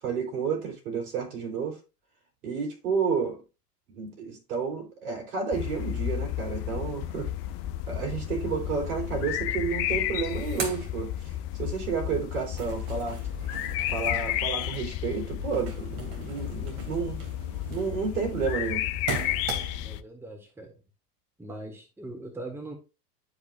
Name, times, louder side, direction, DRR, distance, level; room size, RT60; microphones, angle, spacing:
voice 1, 0.0-1.8 2.4-3.4 3.9-7.3 7.9-11.3 11.6-13.2 13.9-17.2 17.7-18.9, right 5 dB, 65° right, 4.1 m, -31 dB
sound 1, 5.5-20.0, left 12 dB, 30° left, 0.5 m, -32 dB
sound 2, 9.6-9.7 9.9-11.7 12.1-20.0, right 6 dB, 40° right, 2.7 m, -40 dB
voice 2, 19.8-20.8 21.4-22.7, right 2 dB, 5° right, 1.7 m, -41 dB
11.5 x 5.2 x 2.6 m
figure-of-eight pair, 85°, 48 cm